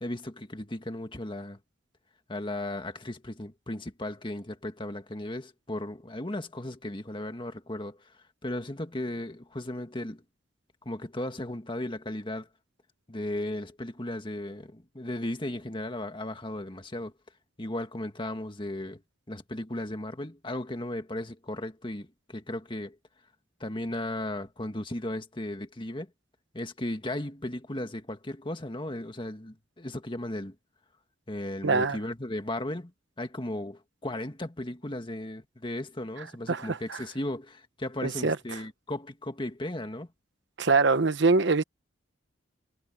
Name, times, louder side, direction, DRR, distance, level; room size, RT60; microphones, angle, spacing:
voice 1, 0.0-1.6 2.3-8.0 8.4-10.2 10.9-12.5 13.1-17.1 17.6-19.0 19.3-23.0 23.6-26.1 26.5-30.6 31.3-32.9 33.2-40.1, left 1 dB, 25° left, 1.8 m, -36 dB
voice 2, 31.6-32.0 36.5-37.0 38.0-38.4 40.6-41.6, right 4 dB, 65° right, 1.0 m, -24 dB
head